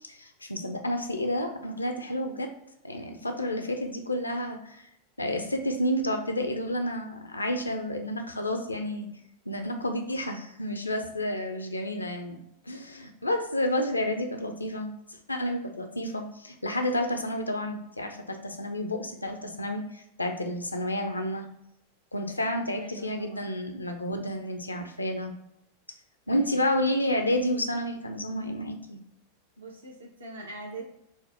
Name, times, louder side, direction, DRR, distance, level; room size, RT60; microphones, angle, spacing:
voice 1, 0.0-2.5 2.8-4.8 5.2-9.1 9.5-12.4 12.7-14.9 15.3-21.4 22.1-25.3 26.3-29.0, left 1 dB, 80° left, 5 dB, 0.5 m, -30 dB
voice 2, 3.4-3.7 22.8-23.5 26.3-26.6 29.6-30.8, right 1 dB, 75° right, -1 dB, 0.9 m, -43 dB
4.1 x 2.0 x 3.4 m, 0.79 s
figure-of-eight pair, 90°, 0 cm